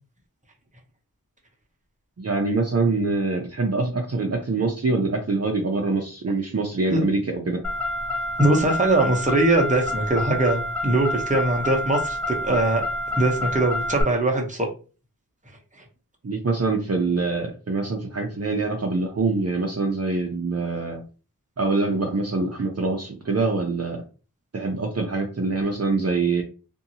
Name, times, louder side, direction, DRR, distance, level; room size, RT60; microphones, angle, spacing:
voice 1, 2.2-7.6 16.2-21.0 21.6-24.0 24.5-26.4, right 3 dB, 45° right, 1 dB, 0.6 m, -24 dB
Car, 7.6-14.0, left 1 dB, 5° left, 0.9 m, -28 dB
voice 2, 8.4-12.8 13.1-14.7, right 2 dB, 20° right, 1 dB, 0.9 m, -21 dB
2.7 x 2.6 x 2.7 m, 0.35 s
wide cardioid pair, 45°, 35 cm